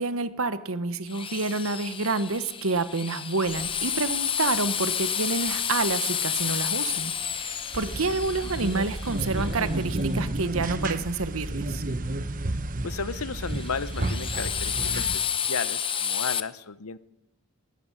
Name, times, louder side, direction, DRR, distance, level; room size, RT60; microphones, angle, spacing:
voice 1, 0.0-11.8, right 3 dB, 70° right, 14 dB, 1.2 m, -28 dB
Drill, 1.1-10.0 13.4-16.4, left 8 dB, 25° left, 0.8 m, -30 dB
sound 1, 3.4-10.9, left 3 dB, 45° left, 5.4 m, -52 dB
sound 2, 7.7-15.2, right 2 dB, 40° right, 1.0 m, -31 dB
voice 2, 12.8-17.0, left 5 dB, 85° left, 16 dB, 0.9 m, -34 dB
19.5 x 14.0 x 9.8 m, 0.93 s
head